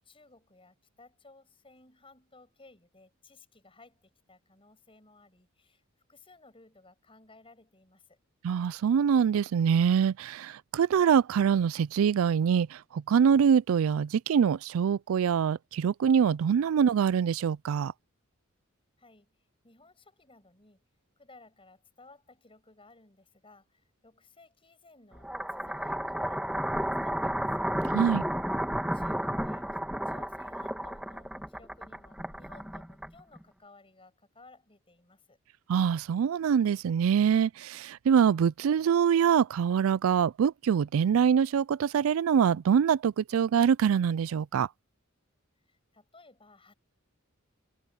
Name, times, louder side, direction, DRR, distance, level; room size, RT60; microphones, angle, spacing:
voice 1, 0.0-5.8 6.1-8.2 19.0-19.3 19.6-20.8 21.2-27.7 28.9-29.7 30.1-35.4 45.7-46.7, left 3 dB, 25° left, 7.0 m, -58 dB
voice 2, 8.4-17.9 27.9-28.2 35.7-44.7, right 7 dB, 85° right, 0.3 m, -24 dB
sound 1, 25.2-33.4, equal, 5° right, 1.9 m, -32 dB
head